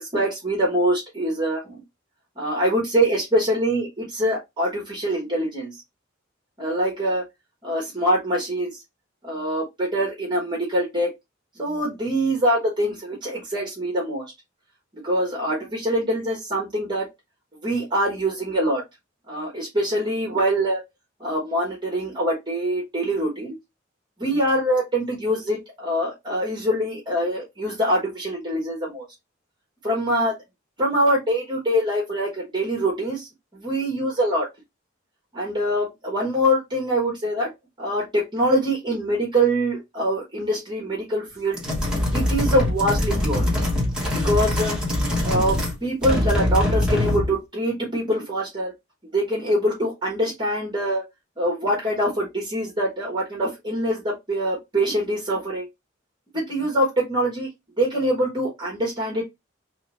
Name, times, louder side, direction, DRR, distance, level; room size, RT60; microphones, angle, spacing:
voice 1, 0.0-1.8 2.4-5.7 6.6-7.2 7.6-8.7 9.2-11.1 11.6-14.3 15.0-17.0 17.6-18.8 19.3-20.8 21.2-23.6 24.2-29.0 29.8-30.3 30.8-33.3 33.6-34.5 35.3-37.5 37.8-41.6 42.1-43.5 44.2-44.7 45.2-48.7 49.1-51.0 51.4-55.7 56.3-57.5 57.8-59.2, right 1 dB, 25° right, -3 dB, 1.2 m, -24 dB
sound 1, 41.5-45.8 46.0-47.3, left 1 dB, 5° right, 1.2 m, -23 dB
3.1 x 2.8 x 4.1 m, 0.20 s
head